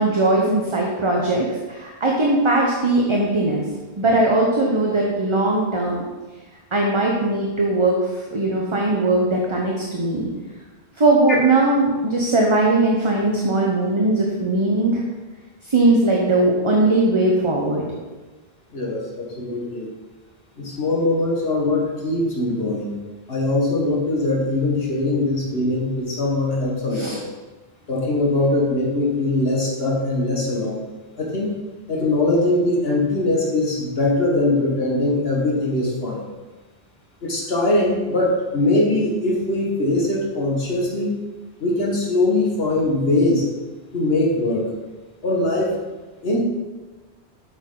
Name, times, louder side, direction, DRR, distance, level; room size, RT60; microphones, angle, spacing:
voice 1, 0.0-3.6 4.0-6.0 6.7-8.0 8.3-10.3 11.0-15.0 15.7-17.9 26.9-27.2, right 2 dB, 30° right, -1 dB, 0.9 m, -19 dB
voice 2, 18.7-19.9 20.6-23.0 23.3-27.2 27.9-30.9 31.2-31.5 31.9-36.3 37.2-41.1 41.6-43.5 43.9-44.7 45.2-45.8 46.2-46.4, left 2 dB, 65° left, -3 dB, 1.7 m, -21 dB
8.2 x 6.3 x 3.9 m, 1.2 s
omnidirectional pair, 1.1 m